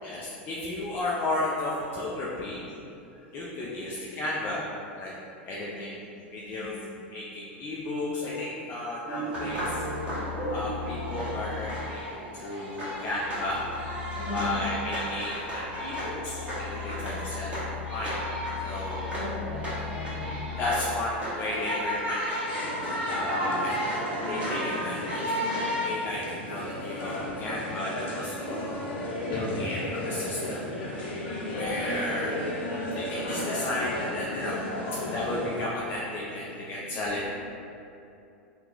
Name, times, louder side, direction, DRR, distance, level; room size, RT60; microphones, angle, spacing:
voice 1, 0.0-2.6 3.3-4.6 5.0-5.1 5.4-5.9 6.3-6.7 7.1-9.8 10.5-12.1 12.3-13.6 14.3-17.6 17.9-18.1 18.6-19.2 20.6-22.4 23.1-23.9 24.3-29.0 29.3-30.6 31.5-32.3 33.0-34.6 34.9-37.2, left 2 dB, 35° left, -6 dB, 0.5 m, -33 dB
voice 2, 3.6-3.9 5.5-6.0 6.5-7.0 12.8-12.9 14.2-14.6 16.9-17.1 19.0-20.3 32.2-32.3 37.2-37.3, left 1 dB, 10° left, -9 dB, 1.1 m, -40 dB
sound 1, 9.1-25.9, equal, 20° right, 1.4 m, -34 dB
sound 2, 9.3-21.8, left 8 dB, 55° right, 0.5 m, -40 dB
sound 3, 22.5-35.7, left 1 dB, 70° left, 0.8 m, -34 dB
2.9 x 2.3 x 3.8 m, 2.7 s
hypercardioid pair, 95°, 6 cm